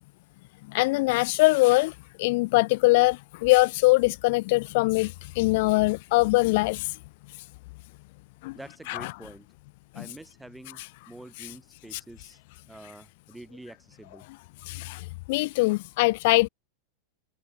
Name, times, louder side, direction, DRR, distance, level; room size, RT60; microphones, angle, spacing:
voice 1, 0.7-1.9 2.2-6.9 8.4-8.5 8.9-9.0 11.9-12.0 14.7-16.5, left 23 dB, 50° left, 0.3 m, -22 dB
voice 2, 8.5-9.5 9.9-12.4 12.7-14.2, right 2 dB, 5° right, 6.5 m, -47 dB
figure-of-eight pair, 90°, 0 cm